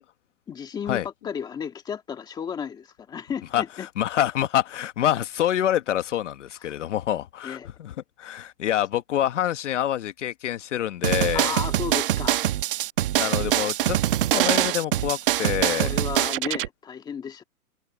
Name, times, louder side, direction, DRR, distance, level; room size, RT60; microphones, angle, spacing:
voice 1, 0.5-3.9 6.6-6.7 7.4-7.7 8.2-8.3 11.3-12.4 13.4-13.5 15.8-17.4, left 7 dB, 10° left, 2.0 m, -33 dB
voice 2, 3.5-7.9 8.2-11.5 13.1-14.0 14.3-15.9, left 11 dB, 50° left, 1.5 m, -26 dB
sound 1, 11.0-16.7, right 13 dB, 35° right, 1.0 m, -24 dB
hypercardioid pair, 170°, 47 cm